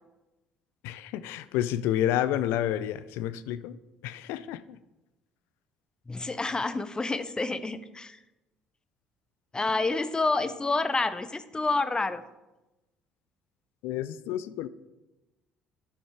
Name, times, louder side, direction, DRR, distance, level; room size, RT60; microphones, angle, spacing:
voice 1, 0.8-3.8 4.0-4.8 13.8-14.7, left 11 dB, 60° left, 14 dB, 0.4 m, -30 dB
voice 2, 6.1-8.2 9.5-12.2, left 3 dB, 20° left, 12 dB, 0.7 m, -28 dB
11.5 x 6.2 x 3.6 m, 1.0 s
figure-of-eight pair, 55°, 4 cm